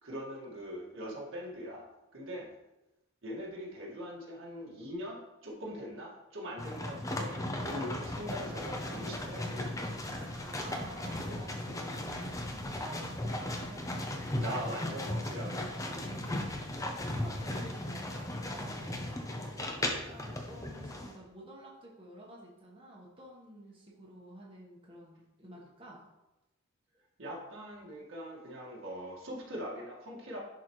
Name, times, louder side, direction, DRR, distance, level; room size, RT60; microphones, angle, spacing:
voice 1, 0.0-2.5 3.2-9.7 14.4-16.4 27.2-30.4, equal, 70° right, -3 dB, 1.7 m, -42 dB
sound 1, 6.6-21.1, left 1 dB, 15° left, 0.6 m, -37 dB
Electric guitar, 8.4-14.1, right 2 dB, 85° right, 1.7 m, -55 dB
voice 2, 10.5-15.0 16.2-26.0, right 1 dB, 25° right, -4 dB, 1.2 m, -51 dB
10.5 x 4.2 x 3.1 m, 0.97 s
head